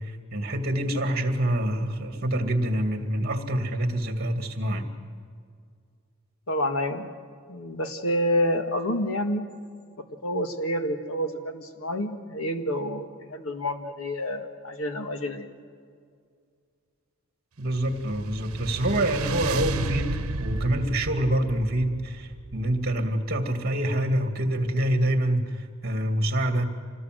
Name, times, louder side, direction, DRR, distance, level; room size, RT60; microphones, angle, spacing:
voice 1, 0.0-4.9 17.6-26.7, right 1 dB, 45° right, 6 dB, 2.3 m, -26 dB
voice 2, 6.5-7.1 7.5-9.5 10.2-15.5, equal, 75° left, 6 dB, 1.9 m, -28 dB
sound 1, 17.7-23.1, right 3 dB, 80° right, 1.1 m, -33 dB
26.5 x 19.5 x 7.8 m, 2.1 s
head